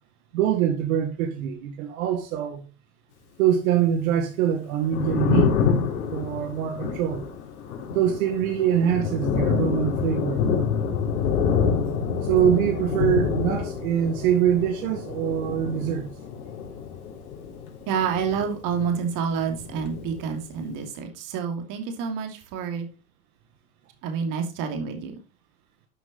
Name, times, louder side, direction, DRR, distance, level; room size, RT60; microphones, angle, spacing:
voice 1, 0.3-2.6 3.4-5.5 6.1-7.2 7.9-10.4 12.2-16.1, right 10 dB, 70° right, 2.0 m, -24 dB
Thunder, 4.7-19.1 19.4-20.7, left 6 dB, 85° left, 3.5 m, -27 dB
voice 2, 17.9-22.9 24.0-25.1, right 6 dB, 45° right, 2.8 m, -28 dB
12.5 x 6.2 x 4.1 m
supercardioid pair, 130°, 44 cm